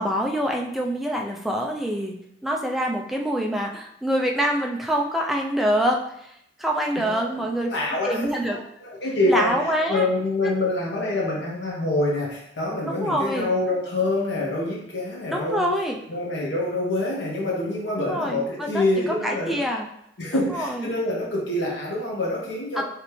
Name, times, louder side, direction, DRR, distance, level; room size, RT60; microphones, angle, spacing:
voice 1, 0.0-2.2 2.4-6.3 6.6-8.6 9.3-10.1 10.4-10.5 12.9-13.5 15.3-16.0 18.0-19.9 20.3-20.9 22.8-22.9, equal, ahead, 0 dB, 0.5 m, -25 dB
voice 2, 7.7-9.5 9.9-15.7 16.1-19.6 20.2-22.8, left 2 dB, 75° left, -4 dB, 1.2 m, -26 dB
5.0 x 3.2 x 3.2 m, 0.75 s
head